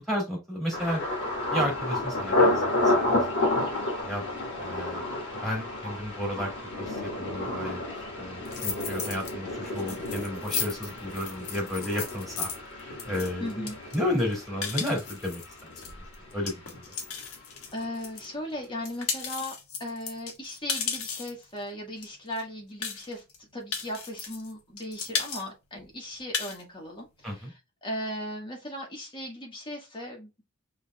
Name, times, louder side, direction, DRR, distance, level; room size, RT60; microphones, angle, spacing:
voice 1, 0.1-1.0 1.5-2.9 3.4-3.5 4.0-4.3 4.6-5.1 5.4-6.5 6.8-7.8 8.2-13.7 13.9-16.0 16.3-16.8 27.2-27.5, left 1 dB, ahead, -2 dB, 2.7 m, -32 dB
Thunder, 0.7-16.5 16.7-17.4 17.8-18.0, left 2 dB, 55° left, 1.9 m, -31 dB
sound 1, 8.5-9.3 9.7-18.3 18.6-21.4 22.0-22.1 22.3-22.4 22.8-23.4 23.7-24.5 24.8-25.4 25.8-25.9 26.2-26.6, left 6 dB, 75° left, 1.3 m, -35 dB
voice 2, 13.4-13.8 17.7-19.5 19.8-27.5 27.8-30.3, left 1 dB, 20° left, 0 dB, 1.8 m, -37 dB
5.5 x 3.4 x 2.4 m, 0.26 s
head